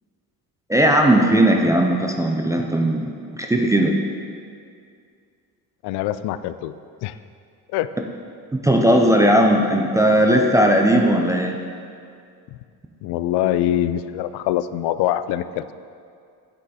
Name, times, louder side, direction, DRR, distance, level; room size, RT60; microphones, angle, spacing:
voice 1, 0.7-3.9 8.5-11.6, right 1 dB, 10° right, 2 dB, 0.3 m, -17 dB
voice 2, 5.8-6.7 7.0-7.1 7.7-7.9 13.0-15.7, left 12 dB, 85° left, 13 dB, 0.5 m, -23 dB
9.7 x 7.6 x 4.2 m, 2.3 s
cardioid pair, 175°, 39 cm